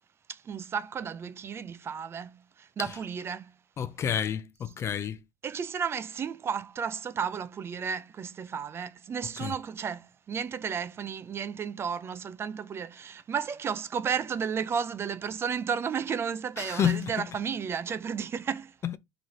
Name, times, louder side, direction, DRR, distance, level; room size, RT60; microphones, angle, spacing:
voice 1, 0.3-3.5 5.4-18.7, right 7 dB, 35° right, 0.5 m, -33 dB
voice 2, 3.8-5.2 9.4-9.5 16.6-17.1 18.8-19.0, left 8 dB, 40° left, 0.6 m, -29 dB
4.0 x 3.2 x 3.9 m
supercardioid pair, 85°, 7 cm